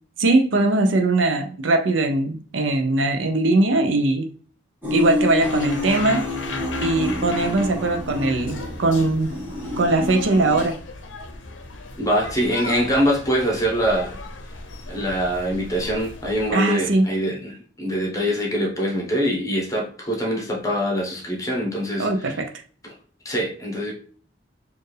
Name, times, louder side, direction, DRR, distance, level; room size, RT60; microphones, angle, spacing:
voice 1, 0.2-4.3 4.9-6.2 6.8-9.3 9.8-10.7 16.5-17.1 22.0-22.5, right 2 dB, 80° right, 5 dB, 0.6 m, -20 dB
sound 1, 4.8-10.6, left 2 dB, 10° right, 1.1 m, -28 dB
sound 2, 5.4-16.5, left 3 dB, 80° left, 0.6 m, -36 dB
voice 2, 12.0-14.1 14.9-22.1 23.2-23.9, equal, 20° left, -1 dB, 1.0 m, -24 dB
4.4 x 2.5 x 3.2 m, 0.44 s
head